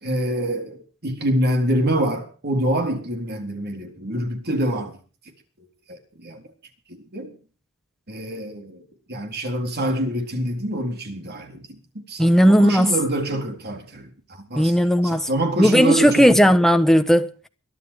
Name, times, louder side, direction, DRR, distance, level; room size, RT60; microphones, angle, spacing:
voice 1, 0.0-5.0 5.9-6.4 6.9-7.4 8.1-14.7 15.0-16.5, right 1 dB, 45° right, 3.9 m, -26 dB
voice 2, 12.2-12.9 14.5-15.3 15.6-17.5, equal, ahead, 1.1 m, -16 dB
23.0 x 11.0 x 4.9 m
head